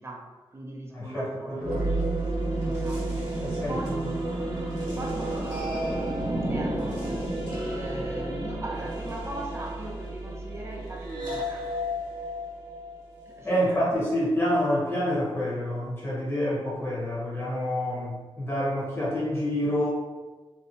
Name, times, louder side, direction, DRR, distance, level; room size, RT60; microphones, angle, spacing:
voice 1, 0.0-1.9 2.6-4.3 5.0-7.3 7.6-11.7 13.3-14.0, right 1 dB, 25° right, -1 dB, 0.4 m, -39 dB
voice 2, 0.9-1.8 3.4-3.8 13.4-19.9, equal, 25° left, -7 dB, 0.9 m, -27 dB
sound 1, 1.6-13.4, right 1 dB, 40° right, 1.0 m, -31 dB
2.6 x 2.1 x 2.8 m, 1.3 s
wide cardioid pair, 130°, 10 cm